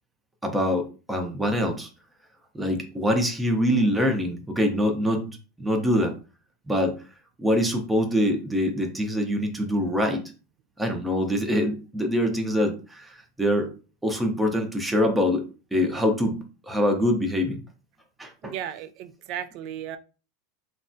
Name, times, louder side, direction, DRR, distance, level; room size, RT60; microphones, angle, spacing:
voice 1, 0.4-1.9 2.5-6.1 6.7-6.9 7.4-10.2 10.8-13.7 14.0-15.4 15.7-17.6 18.2-18.5, equal, 10° right, 4 dB, 0.6 m, -24 dB
voice 2, 18.4-20.0, right 10 dB, 55° right, 11 dB, 0.3 m, -35 dB
3.3 x 2.1 x 2.6 m, 0.35 s
hypercardioid pair, 115°, 0 cm